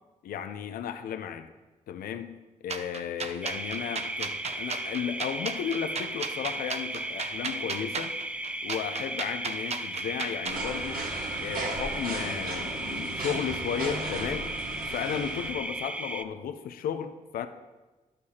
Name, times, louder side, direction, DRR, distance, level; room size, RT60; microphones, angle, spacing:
voice 1, 0.2-1.5 1.9-8.1 8.6-11.0 11.4-14.5 14.9-17.5, left 8 dB, 90° left, 8 dB, 0.5 m, -34 dB
sound 1, 2.7-10.6, right 5 dB, 45° right, 0.6 m, -36 dB
sound 2, 3.4-16.2, right 1 dB, 10° right, 0.4 m, -36 dB
sound 3, 10.5-15.5, right 2 dB, 80° right, 1.6 m, -36 dB
11.5 x 6.6 x 2.8 m, 1.2 s
cardioid pair, 80°, 15 cm